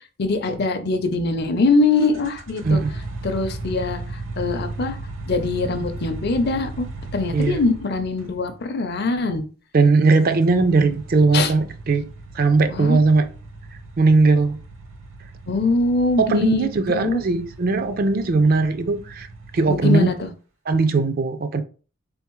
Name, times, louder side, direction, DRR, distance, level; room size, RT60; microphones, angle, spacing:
voice 1, 0.2-2.8 3.2-4.0 4.4-5.0 5.3-6.9 7.1-9.4 11.3-11.5 12.7-13.0 15.5-17.2 19.7-20.3, left 3 dB, 50° left, 0.5 m, -22 dB
sound 1, 1.9-8.3 10.1-20.2, right 2 dB, 65° right, 0.9 m, -36 dB
voice 2, 9.7-12.1 12.3-13.3 14.0-14.6 16.2-19.3 19.5-20.1 20.7-21.6, right 3 dB, 45° right, 0.4 m, -19 dB
3.8 x 3.5 x 3.0 m
head